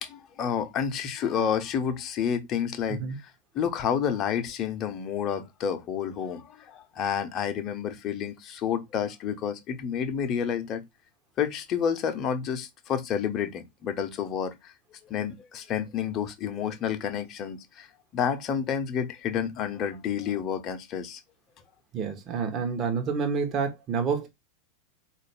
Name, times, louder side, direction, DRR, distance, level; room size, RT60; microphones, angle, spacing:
voice 1, 0.0-3.0 3.5-10.8 11.4-14.7 15.1-17.9 18.1-21.2, left 8 dB, 30° left, 0.8 m, -29 dB
voice 2, 21.9-24.3, right 5 dB, 30° right, 1.0 m, -28 dB
4.1 x 2.5 x 3.3 m
figure-of-eight pair, 90°, 0 cm